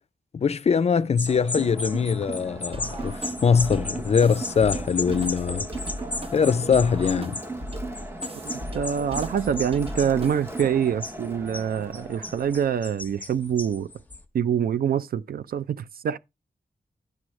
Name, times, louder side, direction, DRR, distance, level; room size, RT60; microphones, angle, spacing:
voice 1, 0.3-5.7 6.3-7.4, left 6 dB, 45° left, 0.4 m, -22 dB
sound 1, 1.2-14.2, left 3 dB, 10° left, 0.9 m, -36 dB
Crowd, 1.3-12.8, right 2 dB, 15° right, 0.7 m, -38 dB
sound 2, 2.7-10.7, right 1 dB, 40° right, 0.9 m, -37 dB
voice 2, 8.7-13.9 14.3-16.2, right 8 dB, 80° right, 0.4 m, -25 dB
10.5 x 6.2 x 3.1 m
wide cardioid pair, 125°, 15 cm